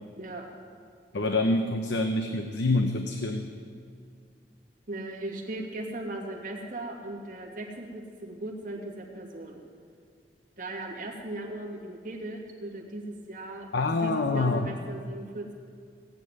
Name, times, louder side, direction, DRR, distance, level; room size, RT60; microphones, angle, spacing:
voice 1, 0.2-0.5 4.9-9.6 10.6-15.5, right 1 dB, 45° right, -2 dB, 2.5 m, -38 dB
voice 2, 1.1-3.5 13.7-14.7, left 2 dB, 80° left, 6 dB, 0.8 m, -26 dB
18.0 x 7.9 x 9.3 m, 2.2 s
head